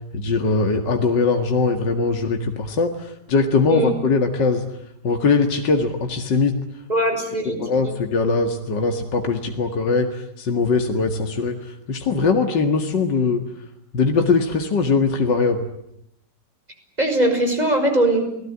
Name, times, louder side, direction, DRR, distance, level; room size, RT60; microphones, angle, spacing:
voice 1, 0.1-4.7 5.0-6.6 7.5-13.4 13.9-15.7, left 4 dB, 80° left, 5 dB, 2.6 m, -21 dB
voice 2, 6.9-7.9 17.0-18.2, right 1 dB, 20° right, 5 dB, 6.3 m, -20 dB
29.5 x 20.0 x 9.9 m, 0.76 s
omnidirectional pair, 1.9 m